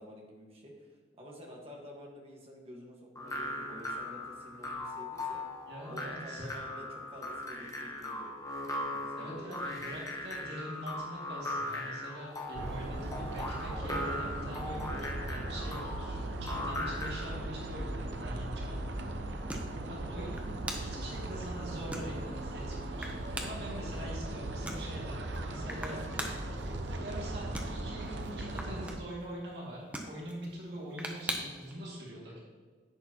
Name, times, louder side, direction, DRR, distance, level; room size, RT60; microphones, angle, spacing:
voice 1, 0.0-5.4 5.9-8.4 8.8-9.7 15.3-15.6 25.6-27.0, equal, 35° right, -1 dB, 1.7 m, -49 dB
sound 1, 3.1-17.4, left 1 dB, 20° left, 1.1 m, -39 dB
voice 2, 5.7-6.5 9.2-18.8 19.9-20.4 20.8-23.1 23.4-26.0 27.0-32.4, equal, 65° right, -4 dB, 2.4 m, -44 dB
sound 2, 12.5-29.0, right 1 dB, 85° right, 0.8 m, -38 dB
sound 3, 15.0-31.7, right 1 dB, 10° right, 0.9 m, -45 dB
10.5 x 8.3 x 3.0 m, 1.5 s
head